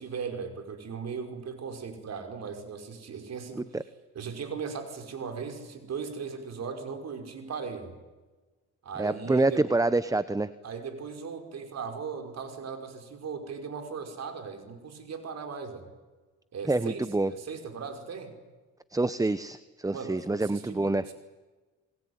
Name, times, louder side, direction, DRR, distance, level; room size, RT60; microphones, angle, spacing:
voice 1, 0.0-3.7 4.2-7.9 8.8-9.6 10.6-15.9 16.5-18.3 19.9-21.1, right 5 dB, 60° right, 6 dB, 5.4 m, -38 dB
voice 2, 9.0-10.5 16.7-17.3 18.9-21.1, right 2 dB, 10° right, 14 dB, 0.9 m, -26 dB
28.5 x 21.0 x 9.7 m, 1.3 s
cardioid pair, 90°, 30 cm